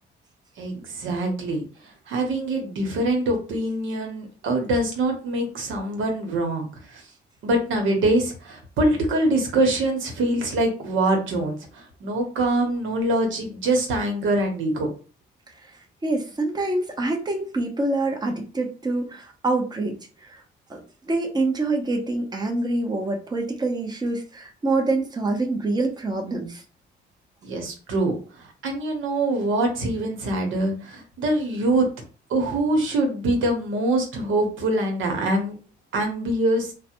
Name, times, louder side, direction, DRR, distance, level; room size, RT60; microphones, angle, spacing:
voice 1, 0.6-1.6 2.1-6.7 6.9-7.0 7.4-14.9 27.4-28.2 28.6-31.9 32.3-35.5 35.9-36.7, right 1 dB, 80° right, 3 dB, 1.0 m, -24 dB
voice 2, 16.0-20.0 20.7-20.8 21.1-26.6, right 2 dB, 20° right, 2 dB, 0.7 m, -25 dB
3.1 x 2.1 x 2.9 m, 0.37 s
cardioid pair, 90°, 20 cm